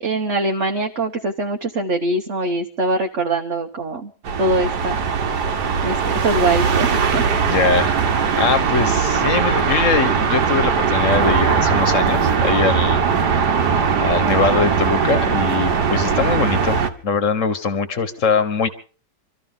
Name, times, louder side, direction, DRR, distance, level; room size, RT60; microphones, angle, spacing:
voice 1, 0.0-4.1 4.4-5.0 5.8-7.2, right 2 dB, 45° right, 2 dB, 1.3 m, -22 dB
sound 1, 4.2-16.9, right 6 dB, 70° right, 1.8 m, -19 dB
voice 2, 7.4-8.0 8.3-13.0 14.0-18.7, left 5 dB, 45° left, 11 dB, 1.6 m, -21 dB
26.0 x 13.5 x 3.8 m, 0.37 s
omnidirectional pair, 1.9 m